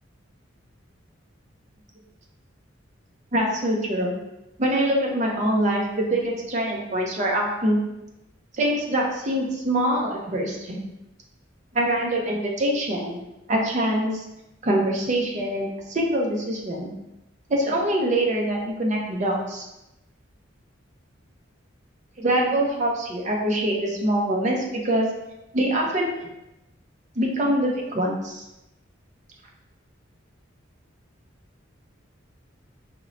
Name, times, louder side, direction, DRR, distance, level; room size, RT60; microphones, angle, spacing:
voice 1, 3.3-4.2 4.6-7.8 8.5-10.8 11.7-13.2 13.5-14.2 14.6-16.9 17.5-19.7 22.2-25.1 25.5-26.3 27.2-28.4, right 1 dB, 40° right, 0 dB, 0.5 m, -24 dB
4.2 x 2.0 x 2.6 m, 0.91 s
head